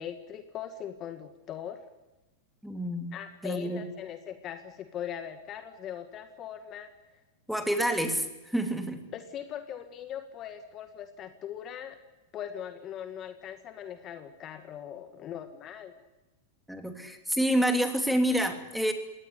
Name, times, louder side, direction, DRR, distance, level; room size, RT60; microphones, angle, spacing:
voice 1, 0.0-1.8 3.1-6.9 9.1-12.0 12.3-15.9, left 9 dB, 35° left, 8 dB, 1.9 m, -40 dB
voice 2, 2.6-3.2 3.4-3.8 7.5-9.0 16.7-18.9, equal, ahead, 6 dB, 3.1 m, -28 dB
22.0 x 18.0 x 9.7 m, 1.1 s
hypercardioid pair, 130°, 0 cm